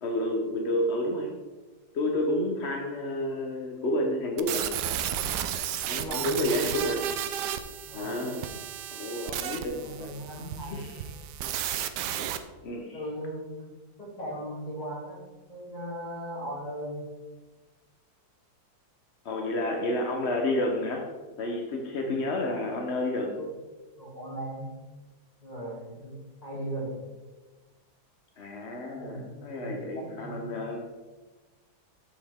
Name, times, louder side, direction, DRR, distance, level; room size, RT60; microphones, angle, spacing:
voice 1, 0.0-1.3 1.9-4.7 5.9-7.1 7.9-8.5 8.9-10.1 10.6-11.0 12.6-13.0 19.2-21.0 21.4-23.3 28.4-30.9, left 1 dB, 55° left, 1 dB, 0.7 m, -30 dB
sound 1, 4.4-12.4, right 10 dB, 75° right, 1.1 m, -33 dB
voice 2, 5.9-6.6 7.8-8.3 9.7-11.2 12.9-13.7 14.0-15.2 15.5-17.0 21.9-22.1 23.4-23.5 24.0-24.7 25.4-26.1 26.4-27.0 28.9-30.4, right 1 dB, 20° left, -6 dB, 2.7 m, -38 dB
7.4 x 7.0 x 3.5 m, 1.2 s
omnidirectional pair, 2.1 m